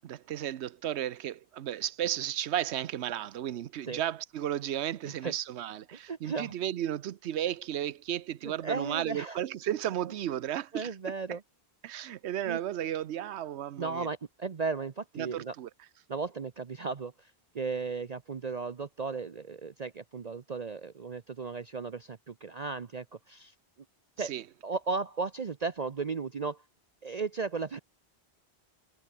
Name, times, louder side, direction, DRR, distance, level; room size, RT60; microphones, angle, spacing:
voice 1, 0.0-10.9 11.8-14.1 15.2-15.7 24.2-24.4, right 11 dB, 90° right, 1.0 m, -34 dB
voice 2, 6.1-6.5 8.4-9.4 10.7-11.4 12.5-12.6 13.8-15.5 16.1-23.5 24.2-24.3 24.6-26.6 27.0-27.8, right 4 dB, 40° right, 0.8 m, -35 dB
omnidirectional pair, 1.1 m